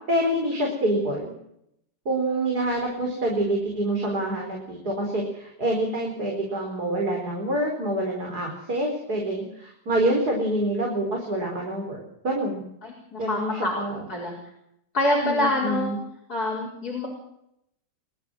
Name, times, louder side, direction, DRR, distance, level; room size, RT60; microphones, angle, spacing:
voice 1, 0.1-1.3 2.0-12.6 13.2-14.0 15.2-16.0, right 1 dB, 60° right, 0 dB, 5.0 m, -26 dB
voice 2, 12.8-13.7 14.1-14.4 14.9-15.9 16.3-17.1, left 1 dB, 55° left, -4 dB, 5.0 m, -26 dB
28.0 x 12.5 x 7.7 m, 0.76 s
omnidirectional pair, 1.9 m